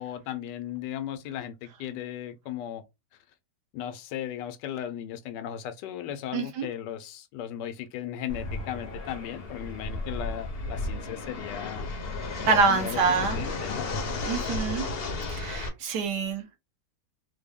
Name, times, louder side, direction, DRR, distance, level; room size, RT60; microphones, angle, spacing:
voice 1, 0.0-2.8 3.7-11.9 12.4-13.0 13.3-13.9, left 10 dB, 85° left, 1.2 m, -36 dB
voice 2, 6.3-6.7 12.5-13.4 14.3-14.8 15.3-16.6, right 4 dB, 75° right, 1.5 m, -26 dB
Fixed-wing aircraft airplane, 8.3-15.7, left 3 dB, 55° left, 0.7 m, -33 dB
3.7 x 2.1 x 3.4 m
omnidirectional pair, 1.8 m